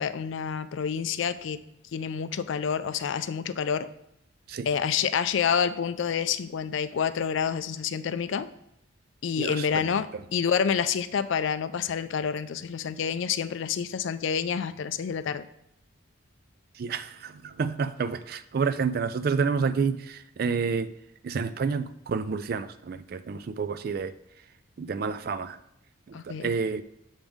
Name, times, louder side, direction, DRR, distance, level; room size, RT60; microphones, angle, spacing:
voice 1, 0.0-1.6 1.9-3.9 4.6-8.5 9.2-15.5 26.1-26.5, left 7 dB, 65° left, 13 dB, 0.3 m, -28 dB
voice 2, 9.4-9.8 16.8-20.9 21.2-24.1 24.8-25.6 26.1-26.8, right 5 dB, 50° right, 13 dB, 0.3 m, -29 dB
7.3 x 5.2 x 3.5 m, 0.80 s
head